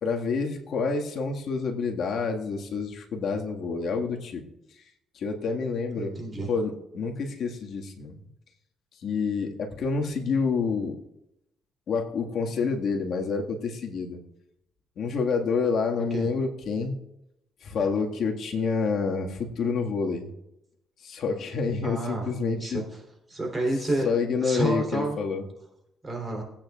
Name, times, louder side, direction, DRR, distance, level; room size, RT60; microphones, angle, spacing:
voice 1, 0.0-4.4 5.1-6.2 6.5-8.2 9.0-11.0 11.9-14.2 15.0-17.0 17.6-20.3 21.0-22.8 24.0-25.4, left 4 dB, 65° left, 1 dB, 1.8 m, -28 dB
voice 2, 6.0-6.5 16.1-16.3 21.8-22.3 22.6-22.8 23.3-24.1 24.4-25.2 26.0-26.4, right 2 dB, 25° right, 0 dB, 3.4 m, -29 dB
20.0 x 8.9 x 2.4 m, 0.85 s
cardioid pair, 90°, 0 cm